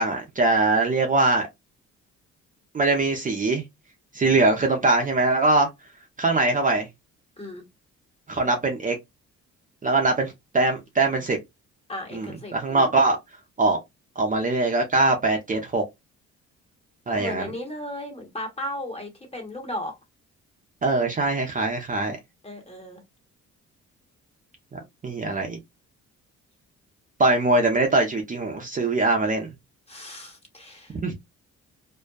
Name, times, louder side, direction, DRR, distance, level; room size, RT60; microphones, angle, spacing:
voice 1, 0.0-1.5 2.7-3.6 4.1-5.7 6.2-6.9 8.3-9.0 9.8-11.4 12.1-13.2 13.6-13.8 14.2-15.8 17.1-17.5 20.8-22.2 24.7-25.6 27.2-29.5 31.0-31.1, right 2 dB, 25° right, 0.6 m, -22 dB
voice 2, 11.9-12.9 17.2-19.9 22.4-23.0 29.9-31.0, left 1 dB, 20° left, 1.2 m, -35 dB
2.6 x 2.1 x 2.2 m
cardioid pair, 90°, 30 cm